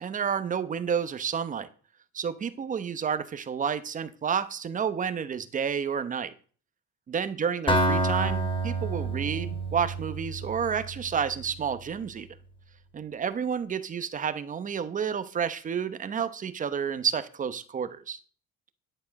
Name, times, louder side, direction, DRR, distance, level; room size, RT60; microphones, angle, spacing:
voice 1, 0.0-1.7 2.1-6.3 7.1-12.3 12.9-18.2, right 7 dB, 25° right, 0.8 m, -30 dB
Acoustic guitar, 7.7-11.5, right 2 dB, 15° left, 2.6 m, -28 dB
11.0 x 9.9 x 5.2 m
cardioid pair, 160°, 30 cm